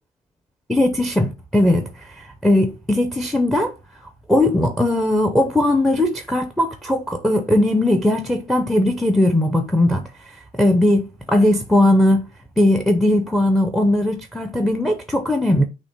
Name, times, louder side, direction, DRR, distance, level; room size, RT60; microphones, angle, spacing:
voice 1, 0.7-3.7 4.3-12.3 12.6-15.6, left 1 dB, ahead, 0.5 m, -19 dB
5.8 x 2.1 x 4.3 m
cardioid pair, 110°, 17 cm